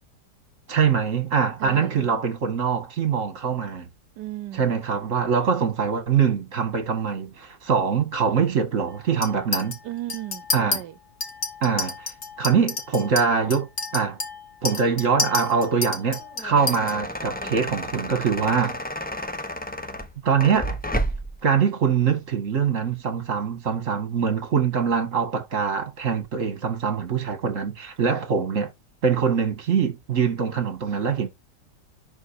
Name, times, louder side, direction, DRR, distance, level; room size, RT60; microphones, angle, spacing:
voice 1, 0.7-3.9 4.5-9.8 10.5-10.8 11.6-12.1 12.4-14.2 14.6-18.8 20.2-20.8 21.4-28.7 29.0-31.3, right 6 dB, 50° right, 2.0 m, -23 dB
voice 2, 1.6-2.2 4.2-4.7 9.8-10.9, right 15 dB, 85° right, 1.3 m, -35 dB
Chink clink, 9.2-9.8 10.1-10.8 11.2-16.9, left 4 dB, 45° left, 2.0 m, -30 dB
sound 1, 16.2-21.4, equal, 10° left, 0.7 m, -31 dB
11.0 x 4.9 x 4.5 m
omnidirectional pair, 1.8 m